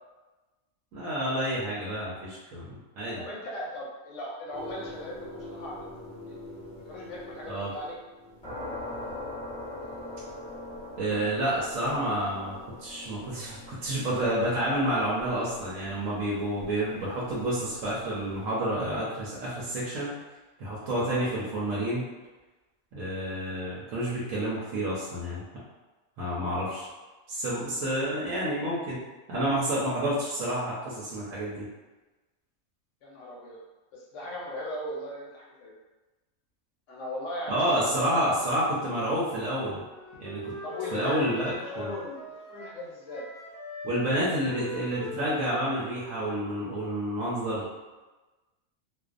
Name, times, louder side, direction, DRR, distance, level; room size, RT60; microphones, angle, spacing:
voice 1, 0.9-3.2 7.5-7.7 11.0-20.1 20.6-22.0 22.9-25.4 26.2-26.9 27.3-29.0 29.3-31.7 37.5-39.8 40.2-40.5 40.9-41.9 43.8-47.6, right 1 dB, 75° right, -7 dB, 1.0 m, -29 dB
voice 2, 3.1-5.9 6.1-6.4 6.9-7.9 20.8-20.9 26.5-26.6 33.0-33.6 33.9-35.7 36.9-37.9 40.6-43.3, left 1 dB, 70° left, -3 dB, 0.9 m, -38 dB
sound 1, 4.5-18.4, left 1 dB, 5° left, 1.0 m, -43 dB
Wind instrument woodwind instrument, 39.7-42.8 43.1-46.9, left 2 dB, 25° left, 0.4 m, -42 dB
2.5 x 2.2 x 2.4 m, 1.2 s
omnidirectional pair, 1.4 m